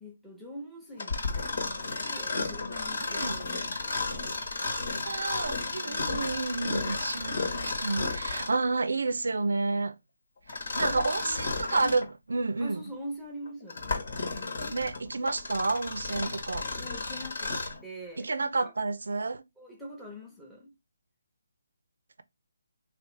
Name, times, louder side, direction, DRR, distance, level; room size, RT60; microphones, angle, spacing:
voice 1, 0.0-4.3 10.7-11.6 11.8-12.1 12.6-14.0 16.8-18.7 19.6-20.8, equal, ahead, 0.8 m, -44 dB
Mechanisms, 1.0-8.7 10.5-12.1 12.7-12.8 13.5-17.8, left 3 dB, 65° left, 1.3 m, -33 dB
voice 2, 3.0-3.4 5.1-9.9 10.8-12.8 14.7-16.7 18.2-19.4, right 3 dB, 75° right, 0.4 m, -30 dB
3.3 x 2.4 x 3.2 m
figure-of-eight pair, 155°, 0 cm